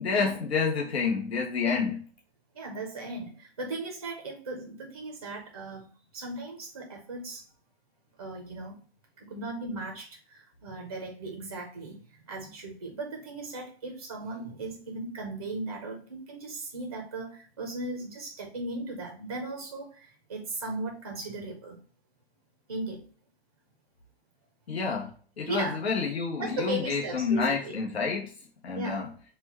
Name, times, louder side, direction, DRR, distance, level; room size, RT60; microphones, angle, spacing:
voice 1, 0.0-2.0 24.7-28.3 28.6-29.1, left 5 dB, 70° left, 0 dB, 1.0 m, -29 dB
voice 2, 2.5-5.9 6.1-7.4 8.2-8.8 9.3-12.0 12.3-21.8 22.7-23.0 25.5-25.8 26.4-27.8 28.7-29.0, right 2 dB, 25° right, 1 dB, 0.5 m, -37 dB
4.3 x 2.2 x 4.1 m, 0.42 s
hypercardioid pair, 180°, 33 cm